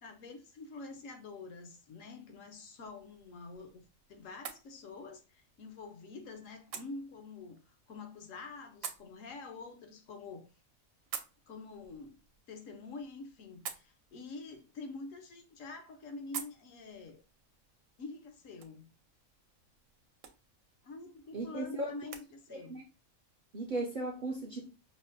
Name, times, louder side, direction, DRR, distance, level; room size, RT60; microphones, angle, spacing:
voice 1, 0.0-3.8 4.1-10.5 11.5-12.2 12.5-17.2 18.0-18.9 20.8-22.8, left 3 dB, 75° left, 1.1 m, -47 dB
sound 1, 2.8-22.3, right 7 dB, 80° right, 1.0 m, -51 dB
voice 2, 21.3-22.1 22.5-22.8 23.5-24.7, right 2 dB, 55° right, 0.5 m, -37 dB
5.3 x 2.1 x 2.5 m
omnidirectional pair, 1.4 m